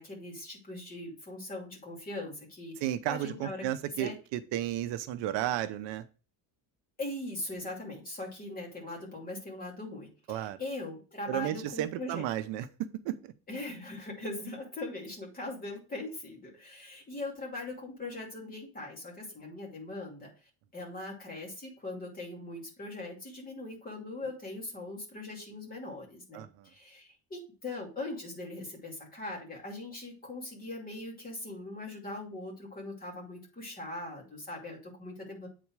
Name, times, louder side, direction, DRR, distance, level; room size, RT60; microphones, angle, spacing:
voice 1, 0.0-2.7 3.1-3.6 4.0-4.2 7.0-12.3 13.5-20.3 20.7-35.5, left 2 dB, 20° left, -1 dB, 2.6 m, -40 dB
voice 2, 2.8-6.0 10.3-10.6 11.3-13.3 26.3-26.7, right 12 dB, 75° right, 10 dB, 0.8 m, -33 dB
8.5 x 4.2 x 4.7 m, 0.35 s
cardioid pair, 170°, 43 cm